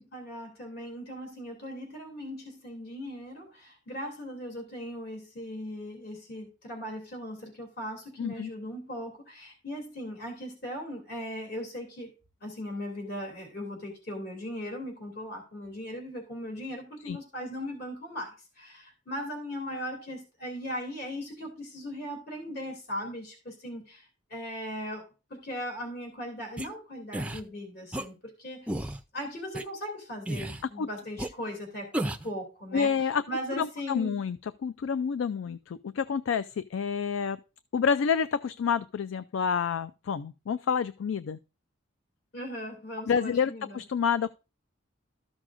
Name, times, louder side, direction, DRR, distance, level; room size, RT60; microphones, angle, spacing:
voice 1, 0.0-12.1 12.4-34.2 42.3-43.8, equal, 55° left, 2.8 m, -38 dB
voice 2, 8.2-8.5 17.1-17.2 30.8-30.9 32.7-33.2 33.6-34.4 34.6-37.4 37.7-41.4 43.1-44.3, left 6 dB, 75° left, 0.4 m, -28 dB
Man Jumping Noises, 26.6-26.7 27.1-27.4 27.9-28.1 28.7-29.0 29.5-29.6 30.2-30.6 31.2-31.3 31.9-32.3, right 1 dB, 5° right, 0.4 m, -32 dB
13.5 x 6.2 x 2.5 m
head